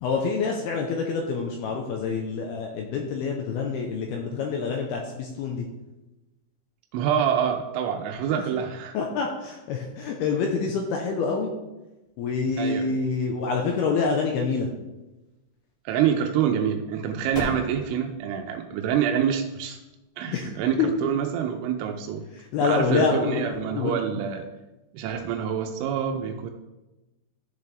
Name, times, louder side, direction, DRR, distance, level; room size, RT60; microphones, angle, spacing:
voice 1, 0.0-5.7 8.3-8.5 8.9-11.5 12.2-14.7 20.3-20.5 20.8-20.9 22.3-23.9, left 5 dB, 80° left, 1 dB, 2.3 m, -26 dB
voice 2, 6.9-9.0 12.6-12.9 15.9-19.8 20.2-22.2 22.6-24.5 24.9-26.5, right 8 dB, 90° right, 4 dB, 3.2 m, -26 dB
sound 1, 15.0-22.0, equal, 50° left, 0.7 m, -41 dB
13.5 x 6.8 x 3.4 m, 1.0 s
omnidirectional pair, 5.5 m